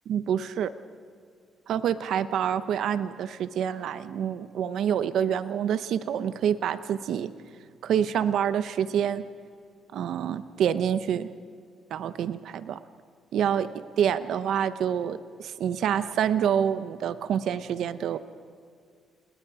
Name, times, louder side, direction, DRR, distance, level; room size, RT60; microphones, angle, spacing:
voice 1, 0.1-0.7 1.7-7.3 7.8-9.2 9.9-11.3 11.9-12.8 13.3-18.2, right 9 dB, 75° right, 12 dB, 0.9 m, -27 dB
29.0 x 20.0 x 4.9 m, 2.3 s
cardioid pair, 90°, 0 cm